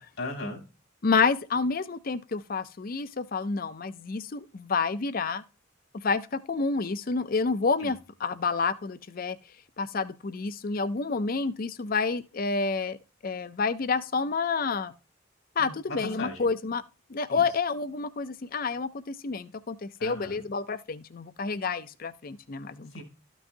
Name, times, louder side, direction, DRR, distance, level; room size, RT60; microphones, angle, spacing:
voice 1, 0.2-0.6 7.8-7.9 15.6-16.5 17.3-17.4 20.0-20.4 22.9-23.0, left 2 dB, 65° left, 2.8 m, -37 dB
voice 2, 1.0-5.4 5.9-9.4 9.8-13.0 13.2-14.9 15.6-16.8 17.1-22.9, left 4 dB, 45° left, 0.5 m, -29 dB
13.0 x 6.1 x 2.6 m
head